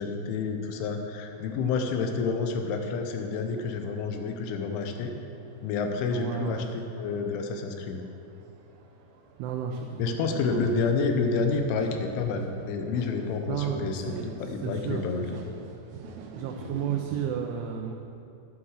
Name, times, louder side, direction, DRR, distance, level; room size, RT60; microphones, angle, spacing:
voice 1, 0.0-5.1 5.6-6.6 7.0-8.0 10.0-15.3, left 4 dB, 90° left, 5 dB, 3.4 m, -29 dB
sound 1, 0.8-17.3, right 4 dB, 70° right, 2.5 m, -47 dB
voice 2, 6.1-6.6 7.2-7.3 9.4-10.8 13.5-14.4 14.6-15.4 16.4-17.9, right 8 dB, 90° right, 2 dB, 3.2 m, -33 dB
11.0 x 10.0 x 6.4 m, 2.6 s
omnidirectional pair, 5.4 m